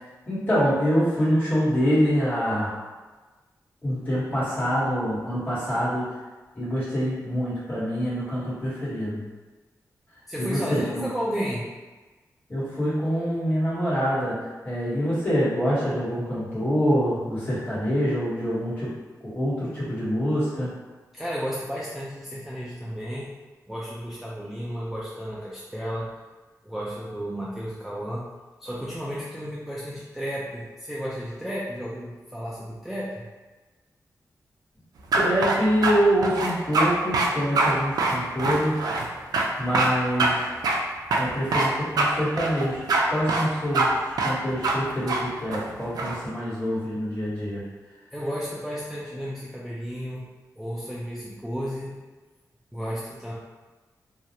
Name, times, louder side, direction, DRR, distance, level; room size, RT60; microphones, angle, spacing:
voice 1, 0.2-2.8 3.8-6.2 6.5-9.2 10.4-11.0 12.5-18.9 19.2-20.7 35.1-38.9 39.6-40.7 41.2-42.8 43.1-47.6, equal, 30° left, -10 dB, 1.3 m, -25 dB
voice 2, 10.3-11.7 21.1-23.3 23.7-26.1 26.6-28.3 28.6-33.2 48.1-50.3 50.6-51.9 52.7-53.3, equal, 5° right, -8 dB, 0.3 m, -33 dB
sound 1, 35.1-35.9 36.2-36.9 37.1-37.3 37.6-37.7 38.0-39.1 39.3-39.5 39.7-39.9 40.2-40.3 40.6-40.8 41.1-41.7 42.0-42.1 42.4-43.0 43.3-43.5 43.7-43.9 44.2-44.3 44.6-44.8 45.1-45.2 45.5-46.2, right 3 dB, 85° right, 0.3 m, -23 dB
2.3 x 2.0 x 2.8 m, 1.3 s
wide cardioid pair, 100°, 6 cm